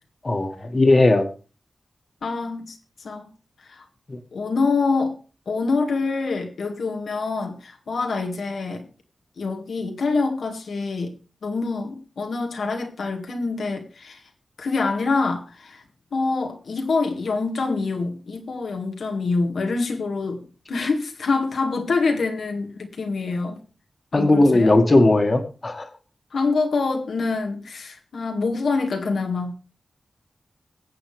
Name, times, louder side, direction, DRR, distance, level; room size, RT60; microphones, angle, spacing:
voice 1, 0.2-1.3 4.1-4.2 24.1-25.9, left 2 dB, 35° left, 1.9 m, -17 dB
voice 2, 2.2-3.3 3.7-3.8 4.3-5.2 5.5-8.9 9.4-11.1 11.4-14.2 14.6-15.8 16.1-20.4 20.7-23.6 24.1-24.8 26.3-29.5, left 4 dB, 85° left, 2.0 m, -25 dB
23.0 x 7.8 x 3.4 m
wide cardioid pair, 95°, 0 cm